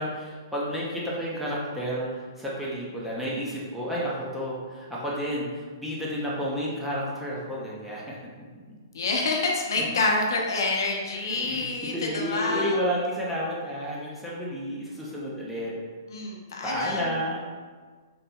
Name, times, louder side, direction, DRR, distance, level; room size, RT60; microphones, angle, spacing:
voice 1, 0.0-8.2 11.3-11.7 11.9-15.8 16.6-17.4, equal, ahead, -6 dB, 0.5 m, -31 dB
voice 2, 8.9-12.8 16.1-17.1, left 3 dB, 75° left, 0 dB, 0.6 m, -27 dB
3.9 x 2.6 x 2.3 m, 1.5 s
hypercardioid pair, 165°, 2 cm